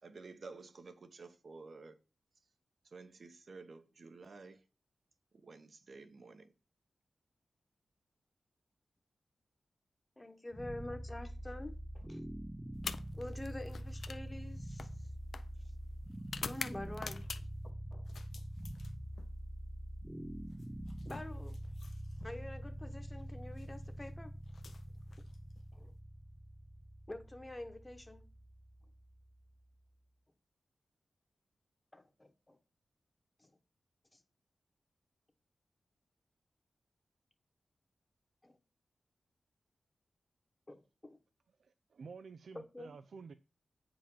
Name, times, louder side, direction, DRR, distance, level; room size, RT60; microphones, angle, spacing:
voice 1, 0.0-2.0 2.8-4.6 5.3-6.5, right 4 dB, 55° right, 1.0 m, -52 dB
voice 2, 10.2-12.2 13.1-14.9 16.4-18.1 21.0-21.6 22.2-24.3 25.7-25.9 27.1-28.2 31.9-32.6 33.4-33.5 34.1-34.2 38.4-38.6 40.7-41.2 42.5-43.0, left 1 dB, 15° left, 1.0 m, -47 dB
sound 1, 10.5-29.6, equal, 5° right, 0.5 m, -45 dB
sound 2, 12.7-17.7 18.1-19.3 20.5-22.3 23.4-23.7 24.5-25.6, left 5 dB, 65° left, 0.6 m, -47 dB
voice 3, 41.6-43.3, right 5 dB, 75° right, 0.5 m, -51 dB
8.8 x 5.1 x 5.4 m
wide cardioid pair, 140°, 0 cm